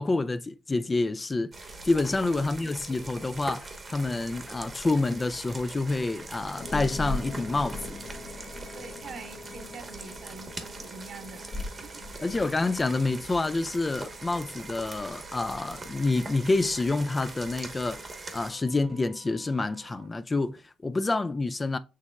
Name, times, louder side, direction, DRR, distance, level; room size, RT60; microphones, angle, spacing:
voice 1, 0.0-8.0 12.2-21.8, left 3 dB, 25° left, 0.3 m, -28 dB
sound 1, 1.5-18.5, right 3 dB, 30° right, 0.9 m, -42 dB
voice 2, 1.9-2.7 8.7-12.0, right 4 dB, 55° right, 1.0 m, -45 dB
Wind instrument woodwind instrument, 5.1-20.1, right 8 dB, 85° right, 2.1 m, -54 dB
sound 2, 6.6-14.6, left 2 dB, 55° left, 1.0 m, -40 dB
6.4 x 3.0 x 2.2 m
cardioid pair, 90°, 0 cm